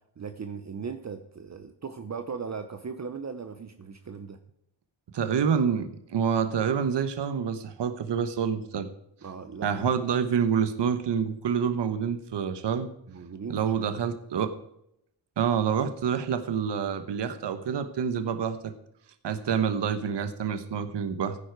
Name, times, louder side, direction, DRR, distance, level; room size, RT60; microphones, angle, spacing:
voice 1, 0.2-4.4 9.2-9.7 13.1-14.0, right 5 dB, 35° right, 8 dB, 1.0 m, -38 dB
voice 2, 5.1-8.9 9.6-12.9 13.5-14.5 15.4-18.7 19.2-21.4, right 7 dB, 60° right, 10 dB, 1.2 m, -27 dB
15.5 x 10.0 x 4.7 m, 0.76 s
wide cardioid pair, 110°, 47 cm